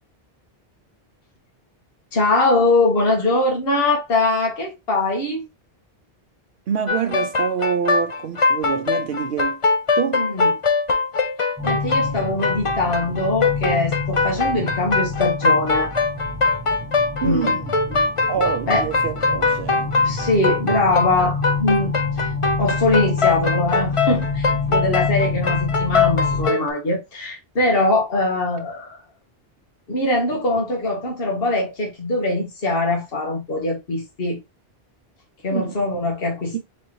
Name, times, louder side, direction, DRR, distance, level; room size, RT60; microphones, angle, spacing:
voice 1, 2.1-5.4 10.2-10.5 11.6-15.9 17.2-17.6 17.9-18.0 18.7-18.8 20.0-21.9 22.6-29.0 29.9-34.4 35.4-36.6, left 2 dB, 70° left, 1.6 m, -22 dB
voice 2, 6.7-9.6 10.0-10.3 17.2-17.7 18.3-19.9 35.5-35.8 36.5-36.6, right 7 dB, 70° right, 0.9 m, -26 dB
sound 1, 6.9-26.7, left 4 dB, 35° left, 0.6 m, -21 dB
sound 2, 11.6-26.5, left 4 dB, 15° right, 0.8 m, -28 dB
4.2 x 3.5 x 3.0 m
omnidirectional pair, 1.0 m